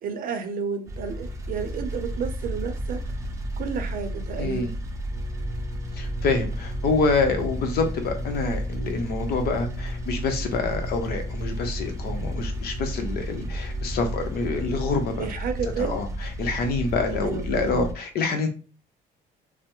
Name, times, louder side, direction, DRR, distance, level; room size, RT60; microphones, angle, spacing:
voice 1, 0.0-3.0 3.6-4.7 15.2-16.0 17.1-17.9, right 6 dB, 55° right, 7 dB, 0.6 m, -31 dB
sound 1, 0.9-17.9, equal, 20° right, 0.6 m, -32 dB
voice 2, 4.4-4.7 5.9-15.3 15.6-18.5, left 4 dB, 65° left, 6 dB, 0.7 m, -27 dB
sound 2, 5.1-15.2 16.0-16.1, left 1 dB, 20° left, 0.7 m, -40 dB
3.2 x 2.1 x 2.9 m, 0.35 s
cardioid pair, 110°, 17 cm